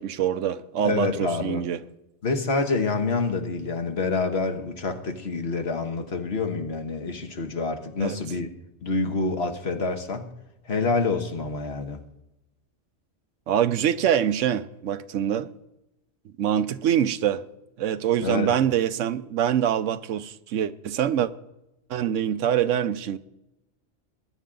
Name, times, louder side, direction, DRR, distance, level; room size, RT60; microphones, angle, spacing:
voice 1, 0.0-1.8 8.0-8.2 13.5-15.5 16.4-17.4 17.8-21.3 21.9-23.2, right 9 dB, 85° right, 1.0 m, -24 dB
voice 2, 0.8-1.6 2.2-8.5 8.8-10.3 10.7-12.0 18.2-18.5, left 3 dB, 60° left, 1.6 m, -27 dB
20.5 x 9.9 x 3.8 m
omnidirectional pair, 1.3 m